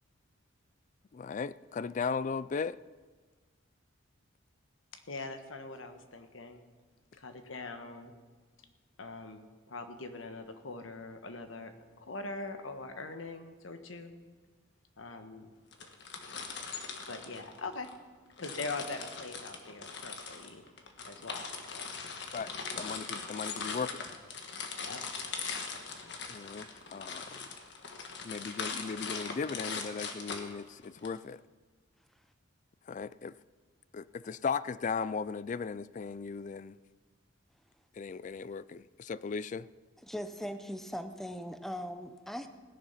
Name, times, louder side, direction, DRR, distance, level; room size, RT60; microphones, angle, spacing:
voice 1, 1.1-2.8 22.3-24.1 26.3-27.4 28.2-31.4 32.9-33.3 33.9-36.8 38.0-39.7, left 5 dB, 40° left, 18 dB, 0.3 m, -37 dB
voice 2, 5.1-6.6 7.2-8.1 9.0-11.7 12.0-14.1 15.0-15.5 17.1-17.9 18.4-20.6 21.1-21.9 24.8-25.0, left 3 dB, 80° left, 7 dB, 1.3 m, -42 dB
sound 1, 15.7-18.0 18.4-31.1, left 5 dB, 60° left, 1.5 m, -40 dB
voice 3, 40.0-42.5, equal, ahead, 9 dB, 0.7 m, -39 dB
16.5 x 10.5 x 5.8 m, 1.4 s
head